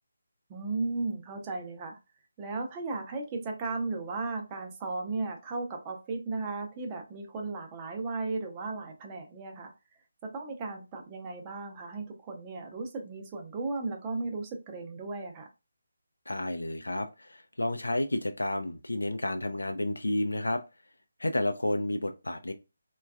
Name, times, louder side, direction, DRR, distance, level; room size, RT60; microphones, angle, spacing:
voice 1, 0.5-2.0 2.4-9.7 10.2-15.5, right 3 dB, 20° right, 2 dB, 0.6 m, -35 dB
voice 2, 16.3-20.6 21.2-22.5, left 1 dB, 80° left, 7 dB, 0.4 m, -31 dB
3.3 x 2.3 x 2.3 m, 0.27 s
figure-of-eight pair, 155°, 0 cm